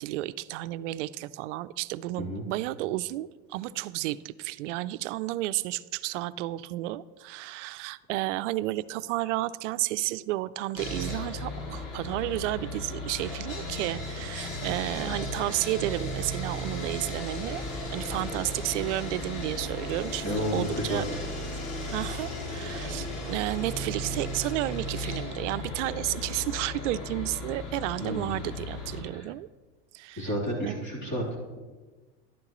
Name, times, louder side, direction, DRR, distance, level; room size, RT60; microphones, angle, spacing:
voice 1, 0.0-17.6 17.9-21.0 21.9-29.5 29.9-30.3 30.6-31.1, right 16 dB, 85° right, 16 dB, 0.5 m, -32 dB
Sawing, 10.8-29.0, left 1 dB, 70° left, 2.8 m, -35 dB
voice 2, 20.2-21.2 28.0-28.5 29.1-29.3 30.2-31.2, equal, 30° left, -4 dB, 3.4 m, -31 dB
11.5 x 9.6 x 3.1 m, 1.3 s
supercardioid pair, 125°, 36 cm